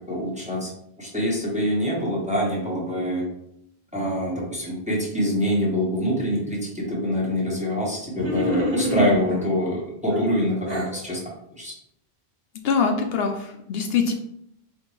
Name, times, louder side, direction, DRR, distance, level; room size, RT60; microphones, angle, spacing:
voice 1, 0.1-0.7 1.0-3.2 3.9-11.2 11.5-11.7, equal, 5° right, -4 dB, 0.8 m, -25 dB
sound 1, 8.1-9.5 10.1-11.0, equal, 60° right, 1.3 m, -27 dB
voice 2, 12.6-14.1, left 5 dB, 70° left, 4 dB, 0.7 m, -23 dB
4.3 x 2.9 x 3.1 m, 0.75 s
omnidirectional pair, 1.1 m